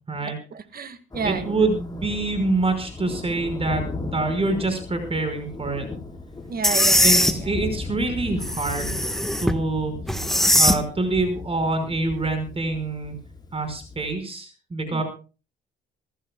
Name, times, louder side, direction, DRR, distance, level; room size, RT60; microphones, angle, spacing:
voice 1, 0.2-1.7 6.5-7.5 14.9-15.0, right 6 dB, 50° right, 11 dB, 2.0 m, -32 dB
Thunder, 1.1-14.2, left 3 dB, 20° left, 4.8 m, -36 dB
voice 2, 1.2-5.9 7.0-9.0 9.4-10.0 10.3-13.2 13.5-15.0, right 2 dB, 30° right, 7 dB, 5.4 m, -26 dB
sound 1, 6.6-7.3 8.4-9.6 10.1-10.8, equal, ahead, 1.5 m, -20 dB
28.0 x 14.5 x 2.4 m, 0.35 s
cardioid pair, 90°, 20 cm